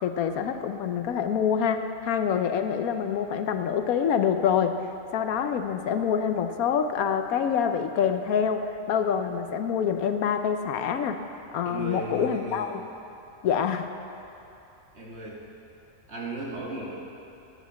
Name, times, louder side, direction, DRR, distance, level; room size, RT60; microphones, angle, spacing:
voice 1, 0.0-4.8 5.1-11.2 11.5-12.8 13.4-13.9, left 7 dB, 85° left, 7 dB, 1.2 m, -26 dB
voice 2, 11.6-12.7 14.9-15.5 16.1-16.9, right 2 dB, 50° right, -3 dB, 1.9 m, -35 dB
9.6 x 7.8 x 8.2 m, 2.7 s
omnidirectional pair, 1.5 m